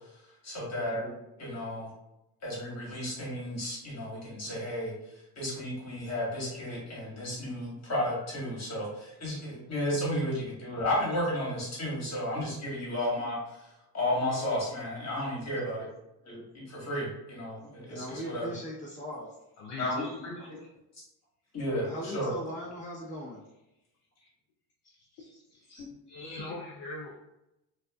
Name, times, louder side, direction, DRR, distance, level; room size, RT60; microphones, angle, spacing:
voice 1, 0.4-1.1 1.4-1.9 2.4-4.9 5.4-13.6 13.9-15.9 16.2-18.5 19.8-20.3 21.5-21.9 22.1-22.3, left 1 dB, 35° left, -5 dB, 1.4 m, -33 dB
voice 2, 17.9-19.4 21.8-23.4, equal, 15° left, -6 dB, 1.0 m, -39 dB
voice 3, 19.6-20.7 26.1-27.2, left 2 dB, 60° left, -1 dB, 0.5 m, -41 dB
2.4 x 2.3 x 2.3 m, 0.90 s
supercardioid pair, 80°, 43 cm